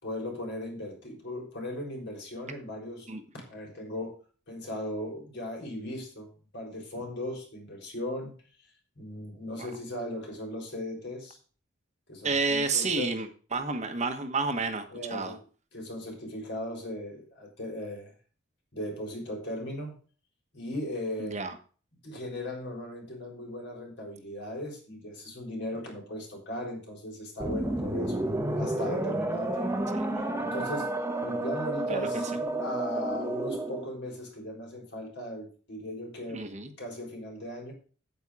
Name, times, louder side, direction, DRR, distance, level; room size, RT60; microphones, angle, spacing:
voice 1, 0.0-3.1 3.3-4.2 4.5-8.3 9.0-11.4 12.1-13.2 14.9-15.4 15.7-18.1 18.7-19.9 20.5-21.4 22.0-28.3 28.5-29.9 30.4-30.9 31.2-36.4 36.8-37.7, left 1 dB, 60° left, 0 dB, 3.9 m, -37 dB
voice 2, 12.2-15.4 21.2-21.6 29.9-30.2 31.9-32.2 36.3-36.7, right 4 dB, 35° right, 6 dB, 1.1 m, -30 dB
sound 1, 27.4-33.9, right 1 dB, 15° right, 1.0 m, -31 dB
8.6 x 8.0 x 4.8 m, 0.39 s
head